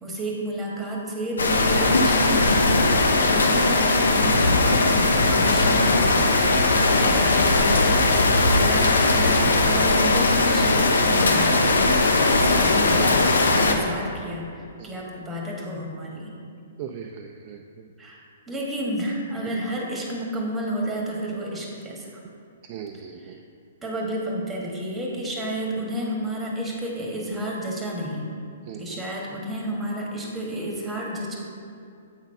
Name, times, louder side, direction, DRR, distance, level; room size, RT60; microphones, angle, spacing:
voice 1, 0.0-6.3 7.0-8.0 8.5-11.7 12.3-16.3 18.0-18.2 18.5-22.1 22.9-23.3 23.8-28.3 28.8-31.4, right 1 dB, 10° right, -2 dB, 1.5 m, -30 dB
sound 1, 1.4-13.7, left 2 dB, 90° left, 0.8 m, -19 dB
voice 2, 16.8-17.6 19.5-19.6 22.6-23.4 28.7-29.0, right 8 dB, 40° right, 3 dB, 0.4 m, -39 dB
7.9 x 4.0 x 5.5 m, 2.5 s
hypercardioid pair, 140°, 0 cm